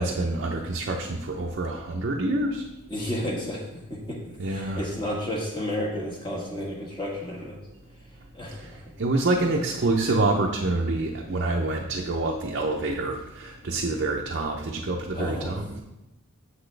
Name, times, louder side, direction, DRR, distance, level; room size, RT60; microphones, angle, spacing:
voice 1, 0.0-2.6 4.4-4.9 8.6-8.7 9.0-15.8, right 2 dB, 50° right, 0 dB, 0.6 m, -27 dB
voice 2, 2.9-7.6 8.3-8.9 15.1-15.8, left 1 dB, 20° left, -3 dB, 1.4 m, -32 dB
7.5 x 6.1 x 3.3 m, 0.94 s
head